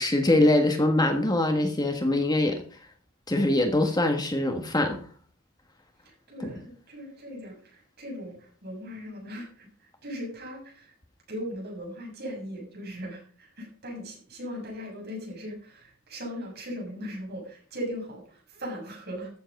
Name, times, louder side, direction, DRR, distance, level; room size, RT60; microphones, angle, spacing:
voice 1, 0.0-2.6 3.3-5.0, left 1 dB, 20° left, 5 dB, 1.4 m, -23 dB
voice 2, 6.1-9.7 10.0-10.9 11.3-19.3, equal, 50° right, -1 dB, 7.2 m, -38 dB
14.0 x 7.7 x 5.3 m, 0.44 s
head